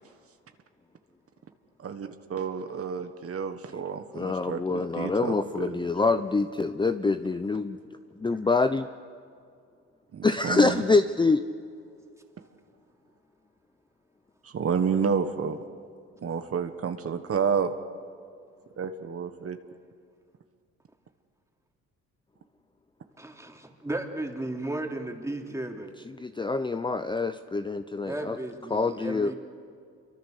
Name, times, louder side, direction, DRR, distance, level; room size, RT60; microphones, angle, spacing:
voice 1, 1.8-5.8 10.1-10.8 14.4-15.6 16.2-17.7 18.8-19.6, right 6 dB, 50° right, 7 dB, 1.4 m, -30 dB
voice 2, 4.1-7.8 8.2-8.9 10.2-11.4 26.2-28.4 28.7-29.3, left 3 dB, 15° left, 10 dB, 0.6 m, -25 dB
voice 3, 23.2-25.9 28.1-29.3, right 2 dB, 10° right, 2 dB, 2.9 m, -34 dB
27.0 x 24.0 x 6.6 m, 2.3 s
cardioid pair, 90°, 30 cm